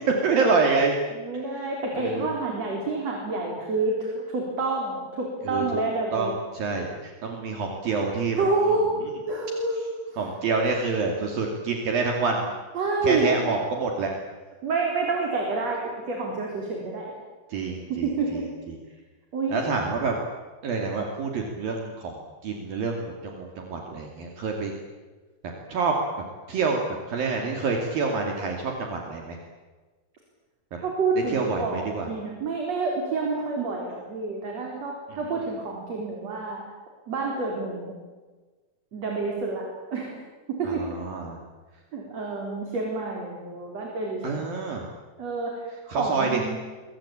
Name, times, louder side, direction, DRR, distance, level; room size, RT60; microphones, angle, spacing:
voice 1, 0.2-1.0 2.0-2.3 5.5-5.8 6.1-8.4 10.2-12.5 13.0-14.1 17.5-18.4 18.7-18.8 19.5-20.2 20.6-22.1 22.4-24.7 25.7-26.0 26.5-26.8 27.1-29.4 31.3-32.1 40.6-41.4 44.2-44.8 45.9-46.4, right 4 dB, 60° right, 1 dB, 4.2 m, -27 dB
voice 2, 1.1-6.4 8.4-8.9 9.3-9.8 10.1-10.2 12.7-13.3 14.6-17.1 17.5-17.6 17.9-18.5 19.3-19.6 30.8-36.6 37.1-37.9 38.9-40.1 40.5-40.8 41.9-44.6 45.2-46.6, right 3 dB, 40° right, 0 dB, 5.0 m, -28 dB
26.5 x 23.5 x 8.8 m, 1.3 s
omnidirectional pair, 4.9 m